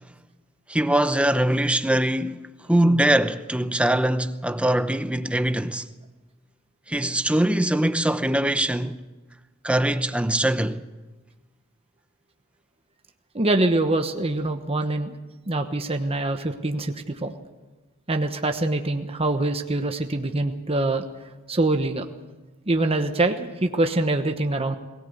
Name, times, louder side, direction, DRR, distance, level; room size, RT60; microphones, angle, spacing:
voice 1, 0.7-2.4 2.7-5.8 6.9-9.0 9.6-10.8, right 1 dB, 5° right, 0.8 m, -22 dB
voice 2, 13.3-15.2 15.5-16.9 17.2-17.4 18.1-21.0 21.5-22.0 22.7-24.8, right 2 dB, 25° right, 1.1 m, -24 dB
22.0 x 17.5 x 8.1 m
head